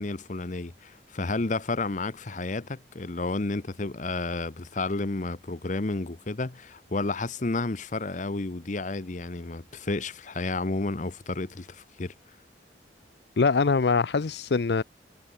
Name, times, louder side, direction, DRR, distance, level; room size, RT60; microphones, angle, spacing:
voice 1, 0.0-12.1, left 3 dB, 45° left, 0.9 m, -31 dB
voice 2, 13.4-14.8, left 4 dB, 65° left, 0.6 m, -23 dB
head